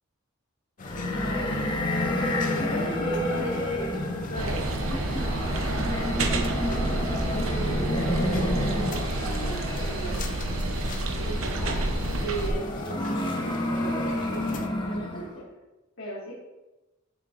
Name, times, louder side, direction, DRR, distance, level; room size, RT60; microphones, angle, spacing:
sound 1, 0.8-14.7, left 4 dB, 40° left, 0.5 m, -42 dB
sound 2, 0.8-15.3, left 1 dB, 25° left, 1.0 m, -30 dB
voice 1, 1.1-2.0 2.6-6.7 7.2-10.2 11.2-13.1 13.3-15.4 16.0-16.3, right 1 dB, 70° left, -8 dB, 2.0 m, -38 dB
sound 3, 4.3-12.5, right 2 dB, 90° right, 0.8 m, -29 dB
8.3 x 6.6 x 2.6 m, 1.1 s
head